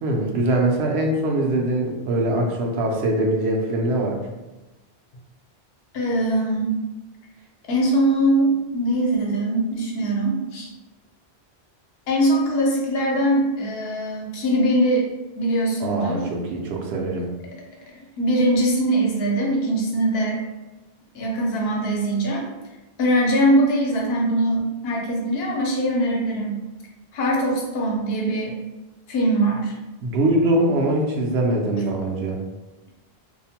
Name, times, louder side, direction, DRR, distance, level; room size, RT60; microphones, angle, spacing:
voice 1, 0.0-4.2 15.8-17.3 30.0-32.4, right 1 dB, 80° right, 0 dB, 0.8 m, -22 dB
voice 2, 5.9-6.8 7.7-10.7 12.1-15.1 15.4-16.2 18.2-20.4 21.1-22.5 23.0-26.6 27.1-28.6 29.1-29.7, right 1 dB, 75° left, -1 dB, 0.9 m, -22 dB
2.5 x 2.1 x 2.7 m, 1.1 s
omnidirectional pair, 1.1 m